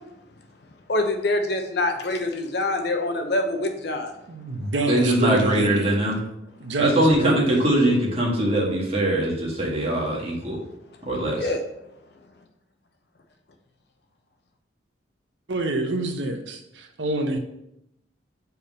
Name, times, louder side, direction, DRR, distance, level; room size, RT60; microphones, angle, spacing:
voice 1, 0.9-4.1 11.4-11.6, left 2 dB, 60° left, 4 dB, 0.9 m, -25 dB
voice 2, 4.3-6.0 6.6-7.5 15.5-17.4, right 2 dB, 70° right, 5 dB, 0.8 m, -27 dB
voice 3, 4.9-6.2 6.8-10.6 11.1-11.5, right 1 dB, 30° right, -3 dB, 1.8 m, -22 dB
5.5 x 4.6 x 5.3 m, 0.80 s
head